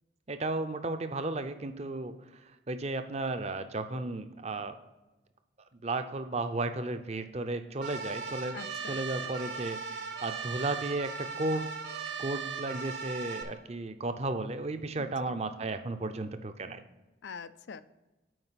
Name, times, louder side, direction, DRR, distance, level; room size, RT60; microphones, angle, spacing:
voice 1, 0.3-2.4 2.7-4.8 5.8-8.6 8.8-11.7 12.2-16.8, right 2 dB, 35° right, 9 dB, 0.6 m, -34 dB
sound 1, 7.8-13.4, right 5 dB, 65° right, 0.9 m, -38 dB
voice 2, 8.5-9.3 15.0-15.6 17.2-17.8, left 5 dB, 75° left, 14 dB, 0.4 m, -46 dB
7.8 x 4.9 x 5.7 m, 1.1 s
head